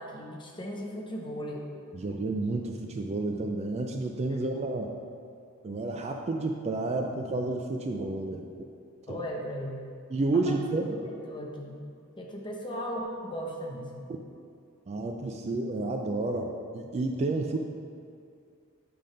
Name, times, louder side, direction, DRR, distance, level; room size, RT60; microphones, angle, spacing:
voice 1, 0.0-1.7 4.3-4.4 9.1-9.8 10.4-10.6 10.9-11.8 12.2-14.1, equal, 20° left, 0 dB, 0.7 m, -37 dB
voice 2, 1.9-4.9 5.6-8.5 10.1-11.0 14.9-17.6, right 2 dB, 30° right, 3 dB, 0.3 m, -30 dB
7.6 x 3.4 x 5.2 m, 2.3 s
head